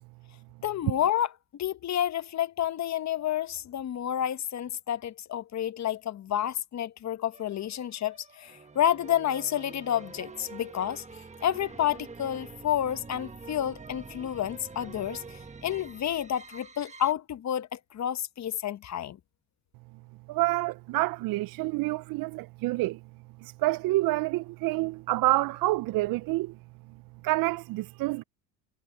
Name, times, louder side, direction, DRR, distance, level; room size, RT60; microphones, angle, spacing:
voice 1, 0.6-11.0 11.4-19.2, left 10 dB, 40° left, 1.0 m, -30 dB
sound 1, 7.3-17.1, right 4 dB, 15° right, 1.5 m, -46 dB
voice 2, 20.3-23.0 23.4-26.6 27.2-28.2, right 19 dB, 50° right, 0.5 m, -28 dB
supercardioid pair, 90°, 44 cm